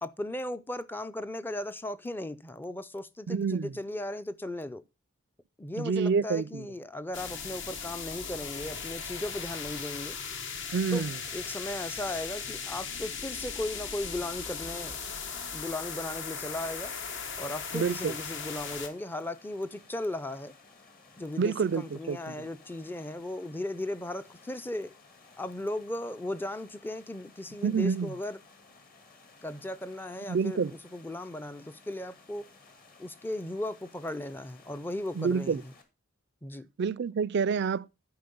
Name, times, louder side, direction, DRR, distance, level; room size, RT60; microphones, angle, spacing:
voice 1, 0.0-4.8 5.6-10.2 10.9-11.0 11.3-15.0 15.5-16.9 17.4-20.5 21.2-25.0 25.4-28.4 29.4-32.5 33.0-35.6 36.4-36.7, left 1 dB, 10° left, 0.4 m, -36 dB
voice 2, 3.3-3.7 5.8-6.7 10.7-11.2 17.7-18.1 21.4-22.5 27.6-28.1 30.3-30.7 35.1-35.6 36.8-37.9, right 5 dB, 55° right, 0.4 m, -28 dB
sound 1, 7.1-18.9, left 6 dB, 60° left, 1.3 m, -38 dB
sound 2, 16.1-35.8, left 3 dB, 45° left, 2.0 m, -57 dB
10.5 x 5.2 x 5.3 m
head